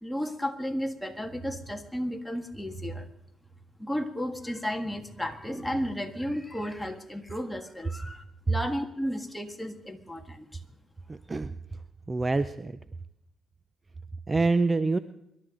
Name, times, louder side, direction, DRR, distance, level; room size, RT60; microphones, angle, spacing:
voice 1, 0.0-3.1 3.8-10.6, equal, 5° left, 5 dB, 1.5 m, -33 dB
voice 2, 11.1-11.5 12.1-12.7 14.3-15.0, right 3 dB, 25° right, 13 dB, 0.5 m, -25 dB
25.0 x 12.0 x 3.8 m, 0.80 s
cardioid pair, 90°, 0 cm